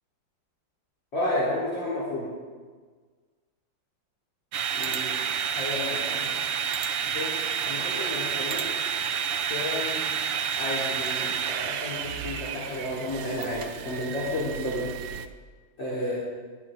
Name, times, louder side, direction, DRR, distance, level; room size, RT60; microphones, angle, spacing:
voice 1, 1.1-2.3 4.7-5.2 5.5-6.3 7.1-7.4 7.6-8.6 9.5-10.1 10.6-14.9 15.8-16.2, left 1 dB, 70° left, -9 dB, 4.7 m, -31 dB
sound 1, 4.5-15.3, right 7 dB, 80° right, 1.6 m, -30 dB
22.5 x 13.5 x 3.8 m, 1.5 s
omnidirectional pair, 2.1 m